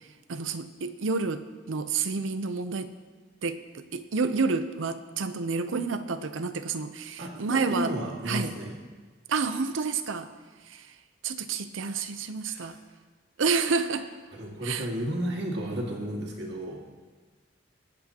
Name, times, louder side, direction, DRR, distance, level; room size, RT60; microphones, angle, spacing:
voice 1, 0.3-2.9 3.4-7.9 8.3-8.5 9.3-10.3 10.7-10.9 11.2-12.8 13.4-14.1 14.6-14.9, right 4 dB, 85° right, 10 dB, 0.6 m, -29 dB
voice 2, 7.2-8.7 12.5-12.7 13.5-13.7 14.3-16.8, equal, 60° right, -1 dB, 2.1 m, -33 dB
22.0 x 8.3 x 2.9 m, 1.4 s
head